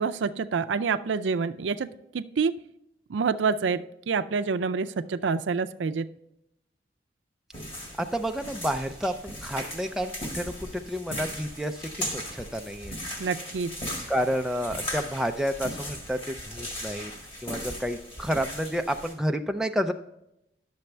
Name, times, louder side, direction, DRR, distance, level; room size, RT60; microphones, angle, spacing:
voice 1, 0.0-1.9 2.1-2.5 3.1-3.8 4.1-6.1 13.2-13.7, right 5 dB, 90° right, 10 dB, 0.4 m, -27 dB
sound 1, 7.5-19.1, equal, 30° left, 1.8 m, -38 dB
voice 2, 8.0-12.9 14.1-17.1 17.4-19.9, equal, 5° right, 5 dB, 0.4 m, -30 dB
10.5 x 6.9 x 3.3 m, 0.83 s
head